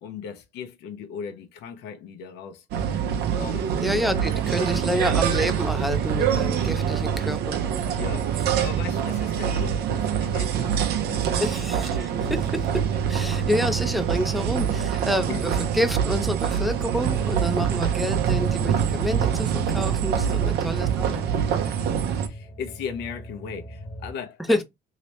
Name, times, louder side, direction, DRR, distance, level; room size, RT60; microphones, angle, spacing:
voice 1, 0.0-2.6 3.3-3.8 4.4-4.8 8.0-10.7 11.1-11.4 15.3-15.4 20.2-20.4 22.2-24.6, left 7 dB, 85° left, 0.7 m, -37 dB
sound 1, 2.7-22.3, right 8 dB, 75° right, 0.7 m, -25 dB
voice 2, 3.8-7.6 11.4-21.2 24.5-24.6, equal, ahead, 0.6 m, -28 dB
sound 2, 17.3-24.1, equal, 45° left, 0.9 m, -44 dB
2.9 x 2.9 x 3.1 m
cardioid pair, 110°, 17 cm